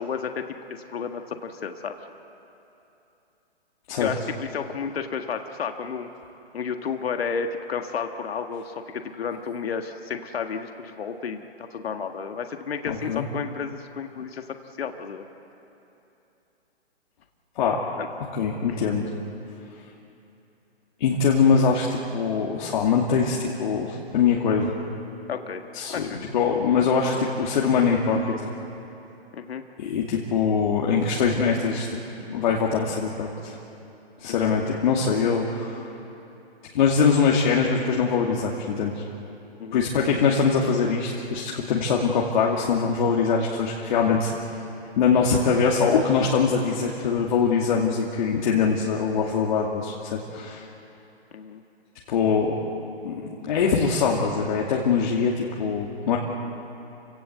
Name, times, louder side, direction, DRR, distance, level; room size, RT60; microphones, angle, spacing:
voice 1, 0.0-2.0 4.0-6.1 6.5-14.5 14.8-15.3 18.0-18.1 18.7-18.8 25.3-25.6 25.9-26.3 29.3-29.6 34.2-34.5 39.6-39.9 51.3-51.6, left 6 dB, 70° left, 6 dB, 1.7 m, -32 dB
voice 2, 12.9-13.3 17.6-17.8 18.3-19.1 21.0-24.7 25.7-28.2 29.8-32.0 32.3-33.6 34.2-35.9 36.7-39.0 39.7-44.3 45.0-50.7 52.1-52.5 53.0-53.2 53.5-56.2, left 5 dB, 50° left, -2 dB, 2.6 m, -23 dB
29.5 x 17.0 x 8.2 m, 2.9 s
hypercardioid pair, 150°, 32 cm